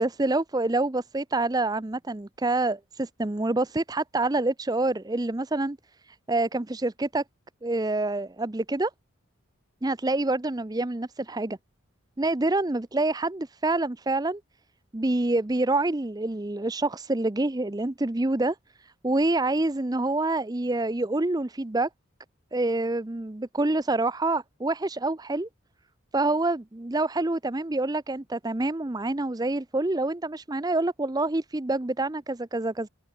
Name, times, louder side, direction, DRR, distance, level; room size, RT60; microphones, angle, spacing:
voice 1, 0.0-5.8 6.0-7.2 7.6-8.9 9.8-11.6 12.2-14.4 14.9-21.9 22.5-25.5 26.1-32.9, right 2 dB, 20° right, 0.6 m, -27 dB
head